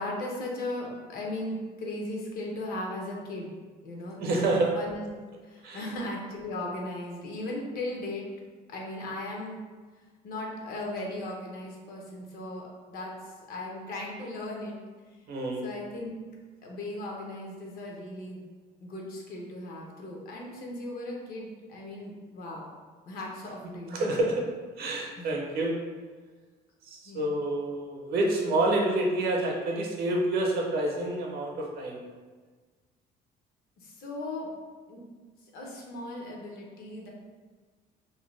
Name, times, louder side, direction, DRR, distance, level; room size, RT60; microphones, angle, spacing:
voice 1, 0.0-3.5 3.8-5.1 5.4-8.3 8.7-9.6 10.2-14.7 15.6-16.1 16.6-18.4 18.8-22.7 23.1-24.0 25.2-25.3 27.0-27.3 33.8-34.5 34.9-35.0 35.4-37.1, left 1 dB, 65° left, -1 dB, 0.7 m, -37 dB
voice 2, 4.2-4.7 5.6-5.8 15.3-15.7 23.9-24.4 24.8-25.7 26.8-32.0, right 2 dB, 65° right, -1 dB, 0.7 m, -28 dB
2.6 x 2.2 x 3.1 m, 1.4 s
cardioid pair, 110°, 17 cm